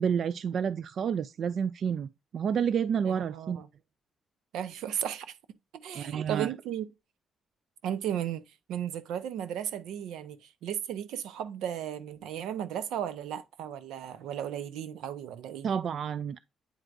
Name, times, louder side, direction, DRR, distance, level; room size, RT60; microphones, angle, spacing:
voice 1, 0.0-3.6 5.9-6.5 15.6-16.4, right 7 dB, 60° right, 0.3 m, -29 dB
voice 2, 3.1-3.7 4.5-5.3 5.7-6.9 7.8-15.7, right 10 dB, 85° right, 0.7 m, -35 dB
8.9 x 4.5 x 2.4 m
cardioid pair, 90°, 0 cm